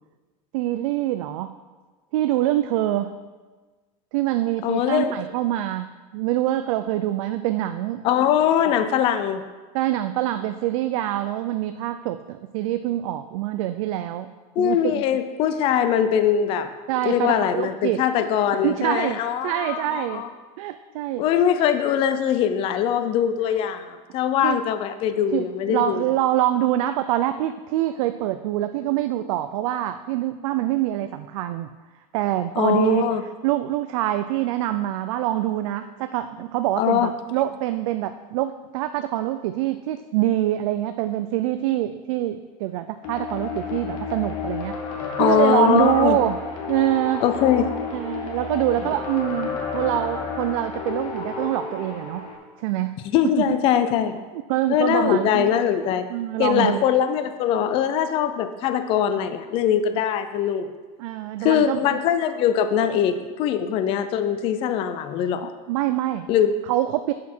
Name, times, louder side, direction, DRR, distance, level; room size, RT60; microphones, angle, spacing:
voice 1, 0.5-1.6 2.1-3.1 4.1-5.9 6.1-8.0 9.7-14.3 14.6-15.0 16.9-18.0 18.6-20.2 20.6-21.2 24.4-24.6 25.3-31.7 32.1-33.0 33.4-46.4 46.7-47.2 47.9-52.3 52.6-53.0 53.4-53.5 54.5-55.5 56.1-56.8 61.0-62.0 65.7-66.3 66.7-67.1, right 14 dB, 75° right, 9 dB, 0.4 m, -25 dB
voice 2, 4.6-5.1 8.0-9.4 14.6-16.7 17.0-20.3 21.2-26.0 32.6-33.2 36.8-37.1 45.2-46.2 47.2-47.7 53.1-54.2 54.7-56.1 56.4-60.7 61.4-65.5 66.3-66.5, left 9 dB, 30° left, 10 dB, 0.4 m, -22 dB
sound 1, 43.0-52.4, left 5 dB, 80° left, 1.7 m, -31 dB
8.4 x 7.4 x 4.5 m, 1.3 s
cardioid pair, 175°, 18 cm